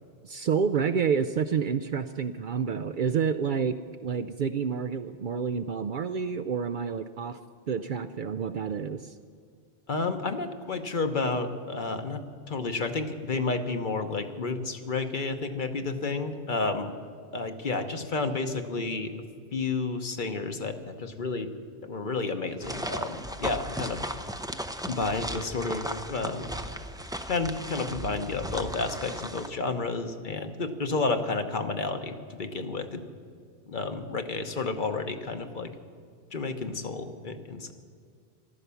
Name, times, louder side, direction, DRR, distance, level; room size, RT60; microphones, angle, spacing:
voice 1, 0.2-3.8 4.0-7.4 7.7-9.1, right 6 dB, 60° right, 10 dB, 0.6 m, -29 dB
voice 2, 9.9-12.2 12.5-16.9 17.3-19.1 19.5-21.5 21.8-24.0 24.9-26.5 27.3-33.0 33.7-35.7 36.3-37.7, left 3 dB, 50° left, 7 dB, 1.1 m, -31 dB
sound 1, 22.6-29.5, equal, 5° right, 0.4 m, -36 dB
15.0 x 12.5 x 6.9 m, 2.1 s
omnidirectional pair, 1.1 m